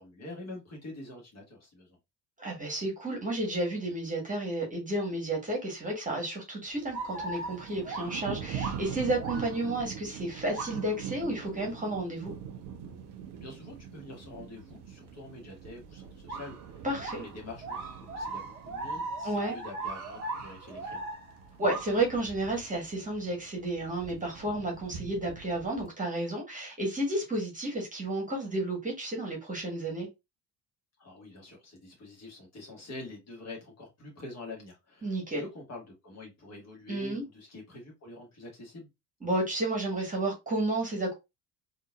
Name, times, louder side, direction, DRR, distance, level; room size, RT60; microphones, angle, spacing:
voice 1, 0.0-2.0 13.3-21.1 31.0-38.9, left 2 dB, 35° left, 1.5 m, -46 dB
voice 2, 2.4-12.3 16.8-17.2 19.2-19.6 21.6-30.1 35.0-35.4 36.9-37.2 39.2-41.1, right 1 dB, 15° right, 1.4 m, -32 dB
Thunder, 6.7-25.9, right 8 dB, 45° right, 0.6 m, -44 dB
sound 1, 6.9-9.7 10.5-10.9 16.3-16.7 17.0-22.1, right 3 dB, 70° right, 1.0 m, -38 dB
3.7 x 2.5 x 2.4 m
figure-of-eight pair, 55°, 47 cm